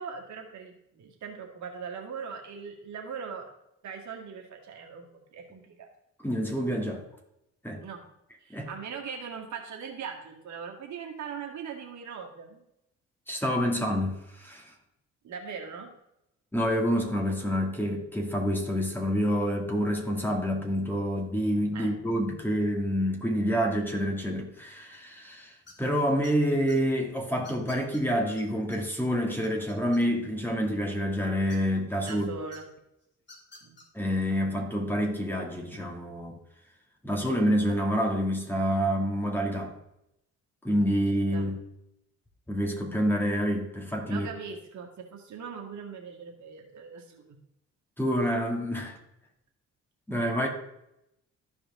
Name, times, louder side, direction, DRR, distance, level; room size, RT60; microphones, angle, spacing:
voice 1, 0.0-3.5 3.8-5.0 5.3-5.9 7.8-8.0 8.4-12.6 15.2-15.9 21.7-22.0 32.0-32.7 33.6-33.8 41.3-41.5 44.1-47.4, right 6 dB, 70° right, 1 dB, 2.0 m, -40 dB
voice 2, 6.2-7.0 7.6-7.8 8.5-8.7 13.3-14.7 16.5-32.3 33.9-36.3 37.0-39.7 40.6-41.6 42.5-44.3 48.0-49.0 50.1-50.5, equal, 5° left, 0 dB, 2.3 m, -28 dB
sound 1, 25.7-25.9 26.2-26.8 27.4-28.0 28.4-28.5 28.7-28.8 29.1-30.3 31.5-32.1 32.5-32.6 33.2-33.8, left 2 dB, 35° left, 2.9 m, -50 dB
14.0 x 4.9 x 3.7 m, 0.83 s
cardioid pair, 90°, 30 cm